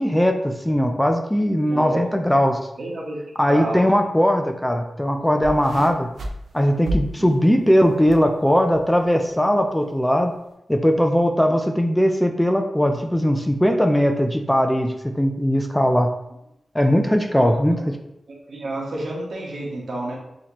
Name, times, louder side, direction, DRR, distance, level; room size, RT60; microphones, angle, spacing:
voice 1, 0.0-2.6 3.4-6.1 6.5-10.3 10.7-16.1 16.7-17.9, equal, 5° left, 4 dB, 0.3 m, -19 dB
voice 2, 1.7-2.0 2.8-3.2 3.5-3.8 7.2-7.3 17.4-17.9 18.5-20.1, right 2 dB, 70° right, -3 dB, 1.1 m, -30 dB
sound 1, 5.4-8.3 8.6-9.1 9.8-9.9, right 1 dB, 90° right, 0.5 m, -31 dB
4.1 x 2.8 x 3.0 m, 0.84 s
wide cardioid pair, 125°, 0 cm